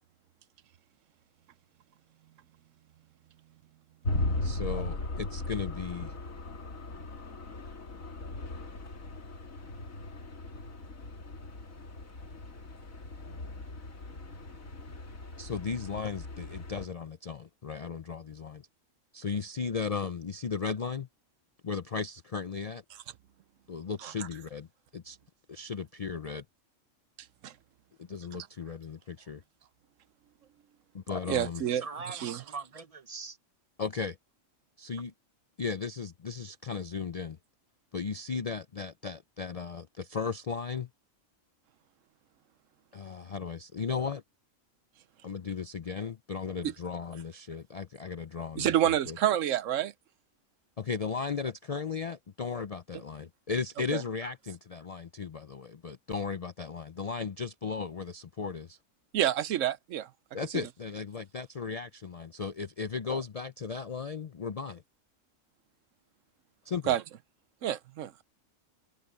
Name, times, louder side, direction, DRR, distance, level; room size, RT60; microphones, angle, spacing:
sound 1, 4.0-16.9, left 2 dB, 85° left, 2.8 m, -38 dB
voice 1, 4.4-6.2 15.4-18.7 19.1-21.1 21.6-22.8 23.7-24.7 24.9-25.2 25.5-26.4 28.0-29.4 30.9-31.6 33.8-34.2 34.8-35.1 35.6-37.4 37.9-40.9 42.9-44.2 45.2-49.2 50.8-58.8 60.3-64.8 66.6-66.9, left 5 dB, 50° left, 0.4 m, -36 dB
voice 2, 31.3-32.4 48.6-49.9 53.9-54.0 59.1-60.1 66.9-67.0 67.6-68.2, right 11 dB, 70° right, 1.0 m, -28 dB
voice 3, 31.8-33.4, right 4 dB, 30° right, 0.9 m, -41 dB
omnidirectional pair, 1.4 m